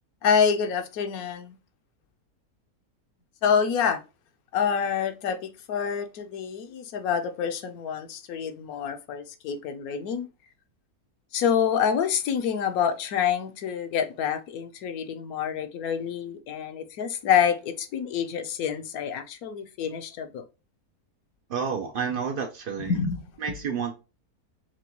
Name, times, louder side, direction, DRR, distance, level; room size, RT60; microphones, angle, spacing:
voice 1, 0.2-1.6 3.4-4.0 4.5-10.3 11.3-20.4 22.8-23.2, left 7 dB, 70° left, 1.1 m, -27 dB
voice 2, 21.5-23.0 23.4-23.9, right 6 dB, 85° right, 0.4 m, -30 dB
5.9 x 2.2 x 2.9 m
omnidirectional pair, 1.7 m